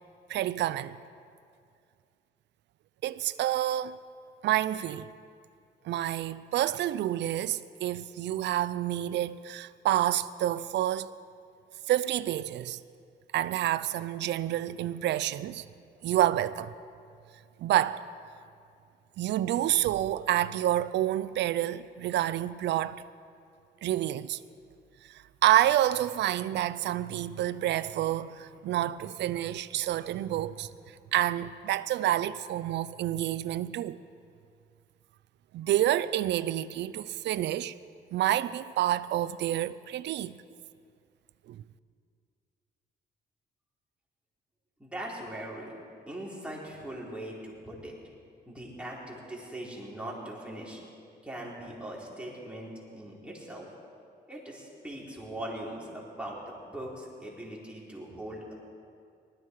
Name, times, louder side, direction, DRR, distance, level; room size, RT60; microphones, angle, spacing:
voice 1, 0.3-1.0 3.0-4.0 4.4-5.1 5.8-11.1 11.9-12.8 13.3-15.6 16.0-16.7 17.6-18.0 19.2-23.0 23.8-24.4 25.1-30.7 31.1-34.0 35.5-37.7 38.1-40.4 41.5-41.6, right 13 dB, 85° right, 0.5 m, -28 dB
voice 2, 44.8-45.7 46.1-47.9 48.5-50.8 51.2-53.7 54.3-58.5, right 1 dB, 5° right, 4.3 m, -40 dB
19.5 x 13.5 x 4.8 m
cardioid pair, 85°, 18 cm